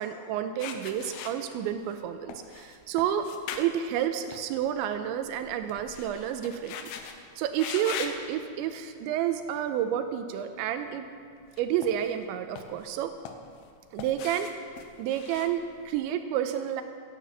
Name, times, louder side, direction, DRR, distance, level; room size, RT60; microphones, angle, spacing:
voice 1, 0.0-3.3 3.6-6.9 7.4-11.1 11.6-13.1 13.9-14.5 15.0-16.8, right 10 dB, 85° right, 8 dB, 2.9 m, -30 dB
sound 1, 0.6-1.9 2.3-4.8 5.1-7.2 7.5-8.2 8.9-9.1 11.4-12.2 12.5-13.7 14.0-16.1, left 7 dB, 80° left, 2.2 m, -41 dB
13.5 x 10.0 x 7.3 m, 2.2 s
omnidirectional pair, 5.4 m